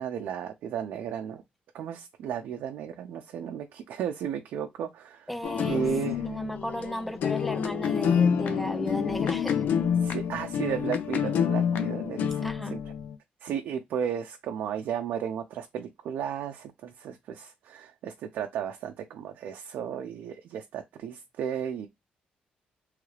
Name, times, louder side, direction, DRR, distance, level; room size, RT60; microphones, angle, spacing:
voice 1, 0.0-1.4 1.7-5.3 5.6-6.3 10.0-12.8 13.4-21.9, right 8 dB, 85° right, 0.5 m, -34 dB
voice 2, 5.3-5.8 6.2-9.7 12.4-12.8, equal, ahead, 0.4 m, -34 dB
sound 1, 5.4-13.1, left 7 dB, 70° left, 0.5 m, -28 dB
3.2 x 2.4 x 3.2 m
cardioid pair, 145°, 3 cm